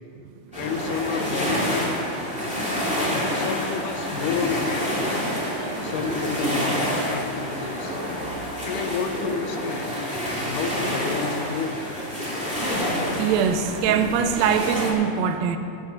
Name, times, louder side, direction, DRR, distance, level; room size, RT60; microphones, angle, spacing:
voice 1, 0.5-2.0 3.3-5.2 5.8-8.0 8.6-10.1 10.5-11.9, left 5 dB, 75° left, 5 dB, 2.2 m, -30 dB
sound 1, 0.5-14.9, equal, 5° right, 1.7 m, -28 dB
voice 2, 13.2-15.6, right 7 dB, 80° right, 8 dB, 1.6 m, -23 dB
17.0 x 6.8 x 5.8 m, 2.7 s
omnidirectional pair, 3.9 m